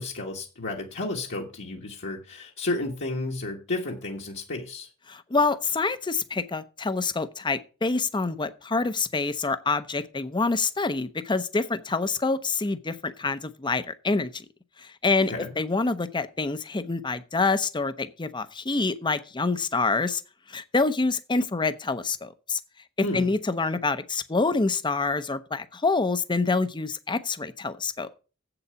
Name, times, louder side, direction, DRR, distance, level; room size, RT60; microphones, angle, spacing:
voice 1, 0.0-4.9 15.3-15.5 23.0-23.3, left 2 dB, 55° left, 1.5 m, -32 dB
voice 2, 5.1-14.4 14.8-20.2 20.5-22.6 23.1-28.1, left 3 dB, 20° left, 0.7 m, -26 dB
8.0 x 6.9 x 6.9 m
head